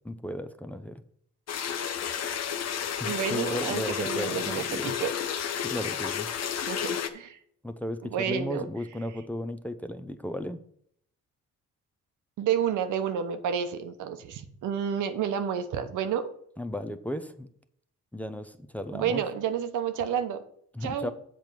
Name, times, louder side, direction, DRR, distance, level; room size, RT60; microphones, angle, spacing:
voice 1, 0.0-1.0 3.0-5.0 5.6-6.3 7.6-10.6 16.6-17.5 18.1-19.2 20.7-21.1, left 1 dB, 5° left, 8 dB, 0.6 m, -35 dB
sound 1, 1.5-7.1, left 8 dB, 60° left, 1.0 m, -31 dB
voice 2, 3.0-5.1 6.7-7.4 8.1-8.6 12.4-16.3 18.9-20.4 20.8-21.1, right 8 dB, 80° right, 9 dB, 1.0 m, -30 dB
7.7 x 4.6 x 6.8 m, 0.66 s
cardioid pair, 90°, 30 cm